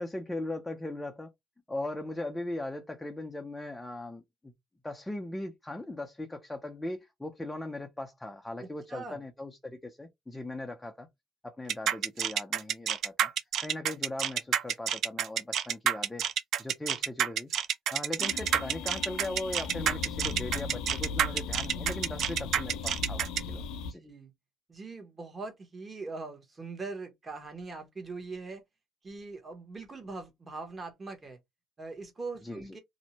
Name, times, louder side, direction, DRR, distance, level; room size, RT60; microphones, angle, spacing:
voice 1, 0.0-1.3 1.7-4.5 4.8-11.1 11.4-13.3 13.6-16.3 16.6-17.5 17.9-24.0 32.4-32.6, left 2 dB, 10° left, 0.5 m, -39 dB
voice 2, 8.6-9.2 24.0-24.3 24.7-28.6 29.0-31.4 31.8-32.8, right 3 dB, 25° right, 1.0 m, -41 dB
sound 1, 11.7-23.4, right 9 dB, 60° right, 0.3 m, -28 dB
sound 2, 18.2-23.9, left 5 dB, 80° left, 0.6 m, -37 dB
2.6 x 2.1 x 2.8 m
cardioid pair, 105°, 0 cm